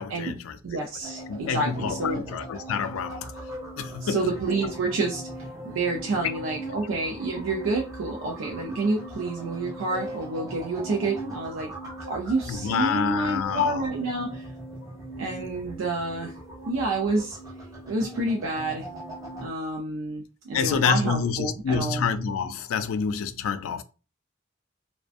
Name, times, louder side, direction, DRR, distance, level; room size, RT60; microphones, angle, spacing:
voice 1, 0.0-0.6 1.3-3.3 3.8-4.2 12.5-13.8 20.5-23.8, left 6 dB, 90° left, 0.3 m, -27 dB
voice 2, 0.6-2.2 4.0-5.2 5.6-11.7 12.1-14.5 15.2-16.3 16.7-17.4 17.9-18.9 19.4-22.0, right 2 dB, 90° right, 0.4 m, -28 dB
sound 1, 1.0-19.5, right 1 dB, 15° right, 0.5 m, -39 dB
2.5 x 2.1 x 2.4 m
head